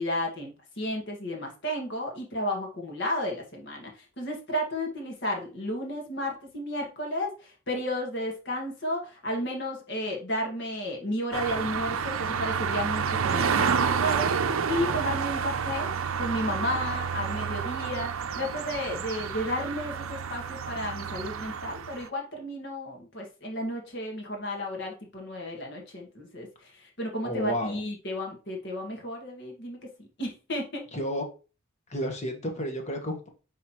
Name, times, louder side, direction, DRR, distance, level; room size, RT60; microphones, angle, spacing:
voice 1, 0.0-14.3 14.6-15.9 16.2-30.9, left 1 dB, 55° left, 0 dB, 1.9 m, -33 dB
sound 1, 11.3-22.1, right 6 dB, 80° right, 0.6 m, -29 dB
voice 2, 27.2-27.8 30.9-31.2 31.9-33.3, equal, 35° left, 4 dB, 1.4 m, -31 dB
9.4 x 3.7 x 3.0 m, 0.33 s
head